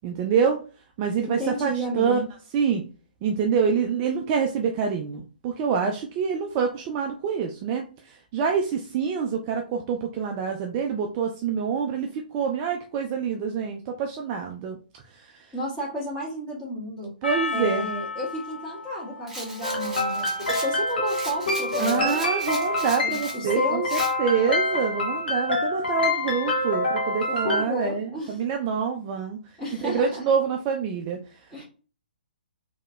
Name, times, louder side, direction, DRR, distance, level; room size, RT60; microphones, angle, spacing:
voice 1, 0.0-0.6 1.0-2.3 2.5-2.8 3.2-14.8 15.1-15.5 17.2-17.9 21.8-29.4 29.8-31.2, right 6 dB, 25° right, 3 dB, 0.4 m, -26 dB
voice 2, 1.3-2.2 15.5-17.1 17.5-22.2 23.0-24.0 27.3-28.4 29.6-30.3 31.5-31.6, equal, 10° left, -6 dB, 1.7 m, -32 dB
Percussion, 17.2-21.8, left 4 dB, 90° left, 0.5 m, -36 dB
Rattle, 19.3-23.4 23.9-24.1, right 1 dB, 5° right, 1.1 m, -37 dB
sound 1, 19.6-27.6, left 2 dB, 70° left, 1.0 m, -26 dB
3.7 x 2.8 x 2.3 m, 0.38 s
figure-of-eight pair, 125°, 5 cm